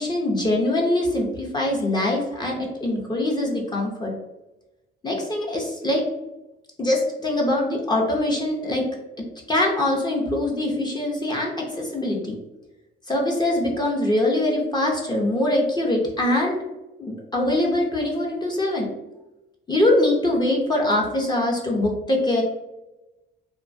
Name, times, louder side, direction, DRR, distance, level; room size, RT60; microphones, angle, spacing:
voice 1, 0.0-4.1 5.0-6.0 6.8-8.8 9.5-12.4 13.1-16.6 17.0-18.9 19.7-22.4, left 1 dB, 20° left, -2 dB, 0.6 m, -23 dB
2.8 x 2.2 x 2.5 m, 1.0 s
cardioid pair, 90°, 20 cm